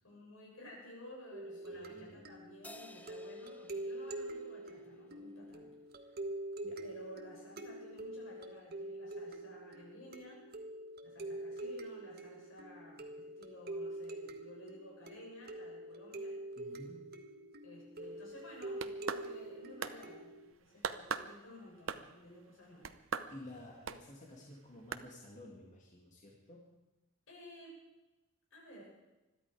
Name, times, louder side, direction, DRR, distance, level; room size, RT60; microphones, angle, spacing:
voice 1, 0.0-5.7 6.0-6.1 6.8-10.4 11.0-16.3 17.6-20.3 20.6-22.9 27.3-27.8 28.5-28.9, left 1 dB, 80° left, -3 dB, 7.5 m, -54 dB
sound 1, 1.3-20.5, right 1 dB, 50° right, 1.4 m, -45 dB
voice 2, 1.7-2.2 6.6-6.9 16.6-17.1 20.7-20.9 23.3-26.7, left 1 dB, 40° left, -2 dB, 2.3 m, -52 dB
Crash cymbal, 2.6-5.3, left 2 dB, 10° left, 0.8 m, -56 dB
sound 2, 18.6-19.5 19.8-20.0 20.8-21.3 21.9-22.2 22.8-23.3 23.9-24.0 24.9-25.0, right 6 dB, 75° right, 0.8 m, -38 dB
21.5 x 13.5 x 4.9 m, 1.0 s
head